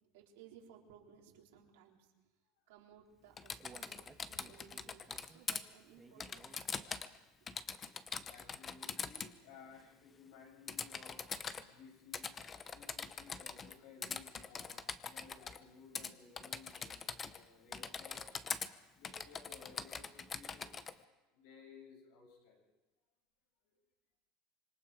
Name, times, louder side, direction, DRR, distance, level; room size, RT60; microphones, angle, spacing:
voice 1, 0.1-2.1 2.7-7.1 20.2-20.3, right 8 dB, 90° right, 0 dB, 3.9 m, -61 dB
Human voice, 3.1-7.2 7.6-7.7 8.1-8.2, right 4 dB, 15° right, 1.6 m, -60 dB
Typing, 3.4-5.6 6.2-7.2 7.5-9.3 10.7-11.6 12.1-13.7 14.0-15.6 16.0-16.1 16.4-17.4 17.7-18.7 19.0-20.9, left 6 dB, 20° left, 0.8 m, -43 dB
voice 2, 8.3-11.2 11.5-18.4 19.0-20.7 21.3-22.6 23.6-23.7, left 5 dB, 75° left, 0 dB, 7.7 m, -58 dB
26.0 x 24.5 x 5.2 m, 1.1 s
cardioid pair, 160°, 0 cm